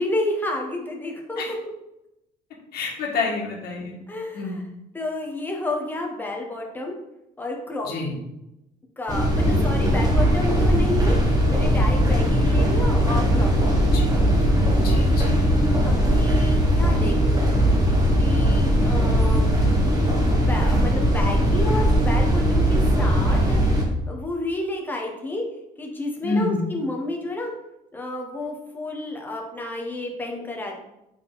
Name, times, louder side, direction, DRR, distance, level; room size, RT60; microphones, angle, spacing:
voice 1, 0.0-1.4 4.1-4.6 4.9-6.9 7.4-7.9 9.0-11.2 11.5-14.3 15.9-17.7 18.2-19.6 20.2-25.4 25.8-27.5 27.9-30.8, left 2 dB, 10° left, 0 dB, 1.2 m, -30 dB
voice 2, 2.7-4.0 4.3-4.6 7.8-8.1 13.9-14.2 14.8-15.4 26.2-26.6, left 3 dB, 70° left, -1 dB, 1.7 m, -28 dB
sound 1, 9.1-23.8, equal, 20° right, 1.4 m, -19 dB
5.8 x 3.9 x 4.1 m, 0.87 s
cardioid pair, 110°, 17 cm